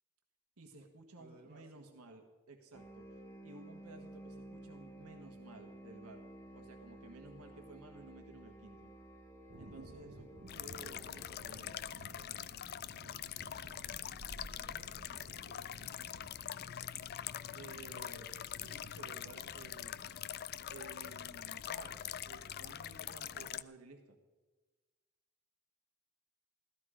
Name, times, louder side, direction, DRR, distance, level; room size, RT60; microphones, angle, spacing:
voice 1, 0.6-3.0 3.4-6.2 6.5-8.9 9.6-10.3 10.5-12.6 17.5-20.0 20.7-24.2, right 3 dB, 85° right, 3 dB, 1.4 m, -55 dB
voice 2, 1.1-1.9 14.2-15.8, right 1 dB, 40° right, 0 dB, 2.5 m, -63 dB
sound 1, 2.7-11.6, right 1 dB, 10° left, 2.6 m, -53 dB
sound 2, 9.5-20.4, right 1 dB, 60° right, 1.1 m, -56 dB
sound 3, 10.5-23.6, left 10 dB, 45° left, 0.4 m, -44 dB
15.5 x 13.5 x 5.0 m, 1.3 s
head